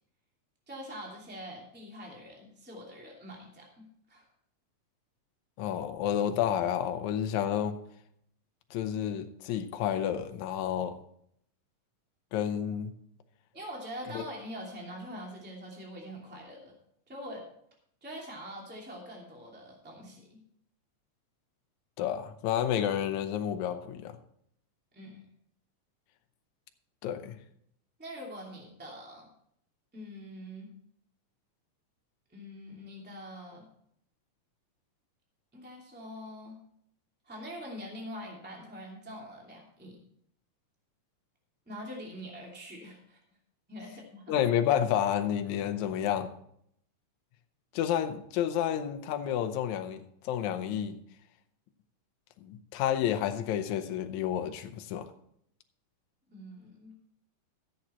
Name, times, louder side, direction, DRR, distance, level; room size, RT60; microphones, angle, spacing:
voice 1, 0.7-4.3 13.5-16.7 17.1-17.4 18.0-20.4 24.9-25.2 28.0-29.3 29.9-30.7 32.3-33.6 35.5-36.6 37.3-40.0 41.7-43.2 43.7-44.3 56.3-56.9, equal, 5° right, -2 dB, 2.2 m, -44 dB
voice 2, 5.6-7.8 8.7-10.9 12.3-12.9 14.1-14.2 22.0-24.2 27.0-27.4 44.3-46.3 47.7-51.0 52.4-55.1, left 10 dB, 70° left, 7 dB, 2.1 m, -30 dB
14.0 x 7.5 x 4.4 m, 0.70 s
omnidirectional pair, 3.7 m